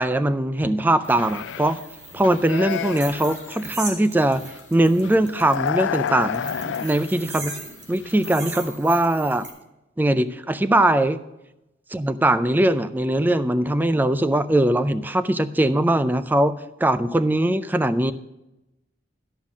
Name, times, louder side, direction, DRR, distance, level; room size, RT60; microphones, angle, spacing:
voice 1, 0.0-1.8 2.1-4.4 4.7-7.5 7.9-9.5 10.0-11.2 11.9-16.5 16.8-18.1, right 1 dB, 10° right, 12 dB, 0.3 m, -21 dB
sound 1, 1.0-1.8 2.1-3.7 4.2-4.6 4.9-7.7 8.0-8.5, left 8 dB, 80° left, 0.3 m, -31 dB
sound 2, 1.0-9.5, right 3 dB, 70° right, 2.2 m, -39 dB
12.0 x 5.7 x 6.1 m, 0.95 s
head